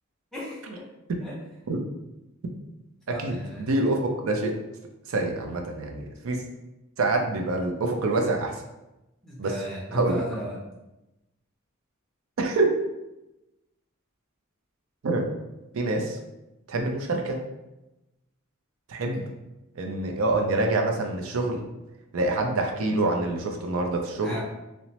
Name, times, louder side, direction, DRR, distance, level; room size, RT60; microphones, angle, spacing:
voice 1, 0.3-0.8 1.2-1.3 3.1-3.6 9.2-10.6 24.2-24.4, right 1 dB, 5° left, -6 dB, 0.7 m, -35 dB
voice 2, 3.1-4.5 5.1-6.4 7.0-8.6 9.4-9.6 9.9-10.2 12.4-12.7 15.0-15.3 15.7-16.2 16.7-17.4 18.9-19.2 19.8-21.6 22.1-24.4, right 2 dB, 75° right, 2 dB, 0.4 m, -26 dB
2.9 x 2.1 x 2.8 m, 0.97 s
head